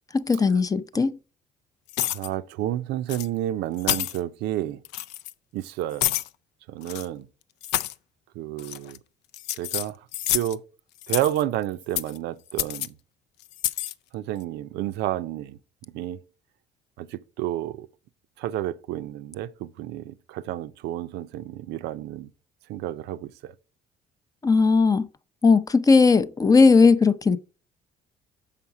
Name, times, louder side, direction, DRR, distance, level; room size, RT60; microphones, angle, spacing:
voice 1, 0.1-1.2 24.4-25.1 25.4-27.4, left 4 dB, 20° left, 0.5 m, -18 dB
sound 1, 1.9-2.3 3.1-3.3 3.8-4.2 4.8-5.3 6.0-6.3 6.8-7.1 7.6-7.9 8.6-9.0 9.3-10.5 11.0-11.4 12.0-12.2 12.6-12.9 13.5-13.9, left 14 dB, 85° left, 0.5 m, -28 dB
voice 2, 2.0-4.8 5.5-6.1 6.7-7.3 8.4-9.0 9.6-10.0 10.3-10.6 11.1-12.9 14.1-15.6 15.9-16.2 17.0-17.9 18.4-22.3 22.7-23.5, right 13 dB, 85° right, 0.5 m, -30 dB
7.0 x 5.7 x 4.7 m
cardioid pair, 110°, 17 cm